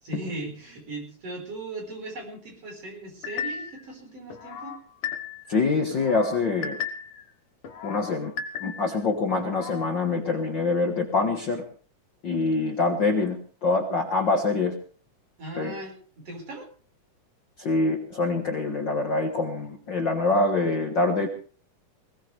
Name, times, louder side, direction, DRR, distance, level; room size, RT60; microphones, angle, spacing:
voice 1, 0.0-4.8 15.4-16.7, right 2 dB, 50° right, 1 dB, 6.0 m, -38 dB
sound 1, 3.2-3.8 4.3-5.5 5.9-7.2 7.6-9.0 9.4-9.9, left 7 dB, 65° left, 2.3 m, -35 dB
voice 2, 5.5-6.8 7.8-8.3 8.6-11.6 12.2-14.8 15.6-15.7 17.6-21.3, left 3 dB, 45° left, 3 dB, 1.8 m, -25 dB
20.5 x 17.5 x 3.4 m, 0.39 s
omnidirectional pair, 3.4 m